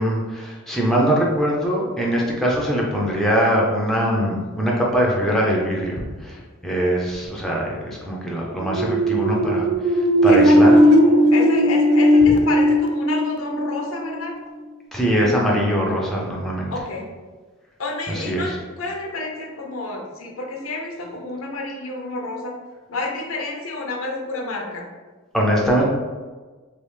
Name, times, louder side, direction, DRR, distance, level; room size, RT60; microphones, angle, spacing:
voice 1, 0.0-10.7 14.9-16.7 18.1-18.5 25.3-25.9, equal, ahead, -3 dB, 0.4 m, -22 dB
sound 1, 8.6-14.3, equal, 75° right, 0.3 m, -16 dB
voice 2, 10.3-14.3 16.7-17.1 17.8-22.5 22.9-24.8, left 2 dB, 75° left, 0 dB, 0.6 m, -30 dB
3.2 x 2.4 x 3.1 m, 1.3 s
head